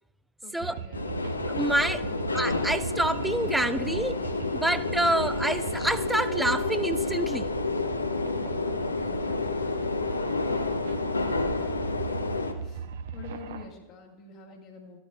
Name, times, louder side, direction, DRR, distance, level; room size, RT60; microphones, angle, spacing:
voice 1, 0.4-1.3 9.3-9.7 12.6-12.8 13.1-15.0, left 5 dB, 40° left, -1 dB, 1.3 m, -46 dB
sound 1, 0.6-13.7, right 6 dB, 55° right, 0.6 m, -39 dB
sound 2, 0.9-12.5, left 3 dB, 80° left, 0.7 m, -30 dB
voice 2, 1.5-2.0 2.3-4.2 4.5-7.5, right 1 dB, 5° right, 13 dB, 0.4 m, -27 dB
14.0 x 10.0 x 2.3 m, 1.0 s
figure-of-eight pair, 90°, 0 cm